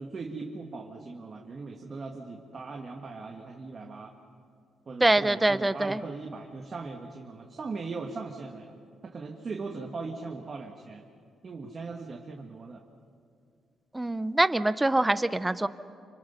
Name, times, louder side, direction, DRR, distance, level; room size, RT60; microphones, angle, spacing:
voice 1, 0.0-4.1 4.9-11.1 11.4-12.8, right 4 dB, 35° right, 2 dB, 1.5 m, -39 dB
voice 2, 5.0-6.0 13.9-15.7, right 2 dB, 10° right, 14 dB, 0.6 m, -24 dB
26.0 x 26.0 x 5.6 m, 2.3 s
cardioid pair, 135°, 0 cm